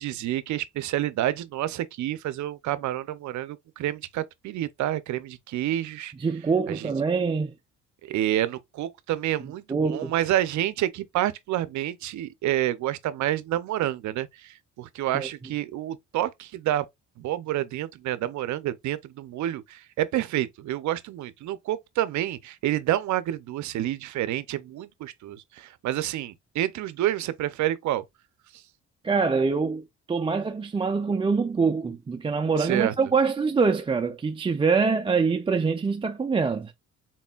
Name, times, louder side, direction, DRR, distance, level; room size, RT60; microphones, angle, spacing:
voice 1, 0.0-6.1 6.7-6.9 8.0-16.9 17.2-28.0 28.5-28.6 32.6-32.9, right 13 dB, 70° right, 0.5 m, -28 dB
voice 2, 6.2-7.5 9.7-10.1 15.1-15.3 29.0-29.8 30.1-36.7, right 4 dB, 20° right, 0.4 m, -24 dB
4.2 x 3.7 x 2.3 m
cardioid pair, 90°, 30 cm